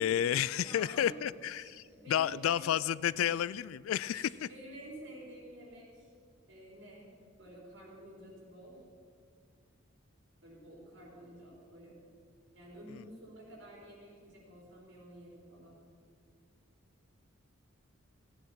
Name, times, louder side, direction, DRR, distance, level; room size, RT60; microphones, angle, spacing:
voice 1, 0.0-1.8 2.1-4.5 12.9-13.0, left 10 dB, 80° left, 21 dB, 0.3 m, -31 dB
voice 2, 0.6-1.2 1.6-2.7 3.1-3.3 4.1-6.1 6.5-7.1 7.4-8.8 10.4-12.0 12.5-15.8, right 1 dB, 60° right, -3 dB, 4.1 m, -51 dB
15.0 x 9.2 x 5.6 m, 2.1 s
head